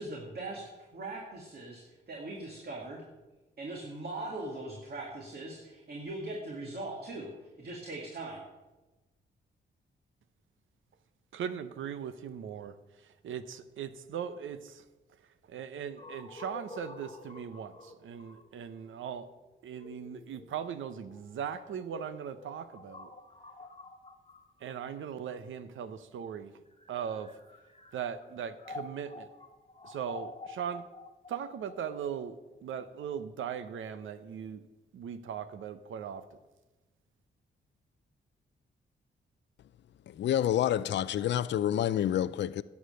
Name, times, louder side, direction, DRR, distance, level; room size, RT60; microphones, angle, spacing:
voice 1, 0.0-3.0 3.6-7.3 7.6-8.4, right 2 dB, 55° right, 2.1 m, -40 dB
voice 2, 11.3-12.7 13.0-14.8 15.5-19.3 19.6-23.1 24.6-26.5 26.9-27.3 27.9-29.3 29.8-30.9 31.3-34.6 34.9-36.2, right 8 dB, 80° right, 0.8 m, -39 dB
sound 1, 16.0-25.8 26.6-33.5, left 3 dB, 30° left, 1.5 m, -49 dB
voice 3, 40.1-42.6, left 11 dB, 65° left, 0.4 m, -28 dB
11.5 x 7.3 x 6.5 m
cardioid pair, 70°, 20 cm